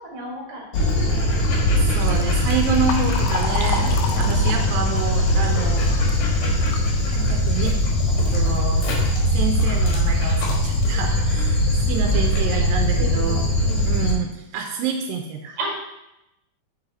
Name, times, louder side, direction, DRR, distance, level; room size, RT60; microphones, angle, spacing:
voice 1, 0.0-1.4 3.7-4.4 12.4-13.9 15.6-15.7, right 1 dB, 55° right, -3 dB, 3.1 m, -36 dB
Dog, 0.7-14.1, left 1 dB, 60° left, 2.8 m, -20 dB
voice 2, 1.9-3.9 4.2-5.9 7.1-7.8 8.2-8.9 9.3-13.5 13.8-15.6, right 5 dB, 90° right, 3 dB, 2.4 m, -28 dB
Liquid, 2.0-6.9 7.3-7.4 8.3-8.4 8.8-9.2 9.8-9.9 10.4-10.5 10.9-11.2, left 6 dB, 90° left, 2.5 m, -33 dB
6.9 x 5.7 x 4.0 m, 0.90 s
omnidirectional pair, 3.9 m